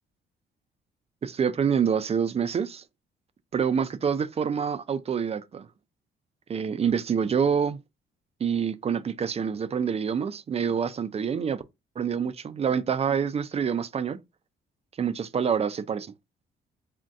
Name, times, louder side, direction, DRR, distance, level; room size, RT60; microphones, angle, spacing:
voice 1, 1.2-2.8 3.5-5.7 6.5-7.8 8.4-11.6 12.0-14.2 15.0-16.1, right 7 dB, 30° right, 0.4 m, -26 dB
2.6 x 2.2 x 3.5 m
cardioid pair, 90°, 20 cm